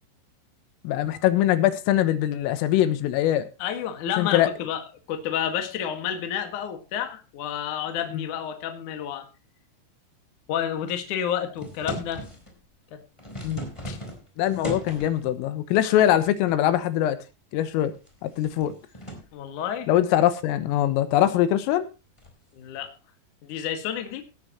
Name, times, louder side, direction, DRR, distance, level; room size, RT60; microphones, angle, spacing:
voice 1, 0.9-3.5 4.2-4.5 8.1-8.2 13.4-13.7 14.4-17.2 17.5-17.9 18.2-18.7 19.9-21.9, left 12 dB, 80° left, 11 dB, 3.7 m, -22 dB
voice 2, 3.6-9.3 10.5-12.2 12.9-13.0 13.9-14.0 15.8-16.0 19.3-19.9 22.5-22.9 23.4-24.2, left 9 dB, 55° left, 6 dB, 2.4 m, -30 dB
sound 1, 11.6-12.5 13.0-15.3 16.2-16.8 17.1-17.2 17.8-19.3 22.2-22.4, equal, 5° left, 3.3 m, -37 dB
17.0 x 12.0 x 3.0 m, 0.28 s
omnidirectional pair, 5.9 m